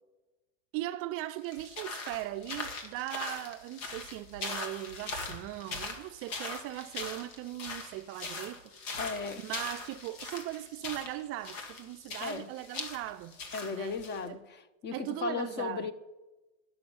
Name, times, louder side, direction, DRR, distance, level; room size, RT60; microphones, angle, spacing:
voice 1, 0.7-8.6 9.4-13.4 13.7-14.0 14.2-14.4 14.9-15.9, right 15 dB, 40° right, 0.4 m, -39 dB
sound 1, 1.4-14.2, left 3 dB, 80° left, 2.0 m, -41 dB
voice 2, 9.0-9.4 12.2-12.5 13.5-15.9, left 5 dB, 30° left, 0.7 m, -36 dB
11.5 x 6.2 x 7.0 m
supercardioid pair, 120°, 38 cm